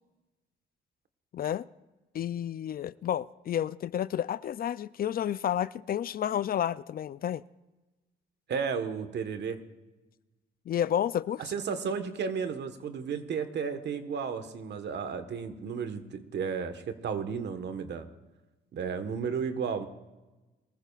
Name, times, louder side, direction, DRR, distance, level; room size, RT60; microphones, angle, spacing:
voice 1, 1.3-1.7 2.1-7.4 10.7-11.4, left 10 dB, 50° left, 0.4 m, -30 dB
voice 2, 8.5-9.6 11.5-18.1 18.7-19.9, right 6 dB, 60° right, 1.4 m, -33 dB
22.5 x 14.5 x 2.4 m
cardioid pair, 90°, 20 cm